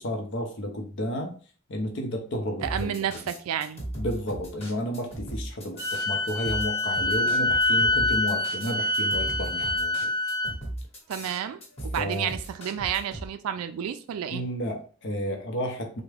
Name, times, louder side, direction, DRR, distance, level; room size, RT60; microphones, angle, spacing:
voice 1, 0.0-1.3 1.7-2.9 3.9-10.1 12.0-12.3 14.3-16.0, equal, 55° left, 0.7 m, -32 dB
sound 1, 2.6-13.3, right 1 dB, 30° left, 1.0 m, -37 dB
voice 2, 2.6-3.8 11.1-14.4, right 9 dB, 80° right, 0.3 m, -31 dB
Wind instrument woodwind instrument, 5.8-10.5, left 2 dB, 15° right, 0.7 m, -25 dB
3.5 x 2.1 x 3.3 m
head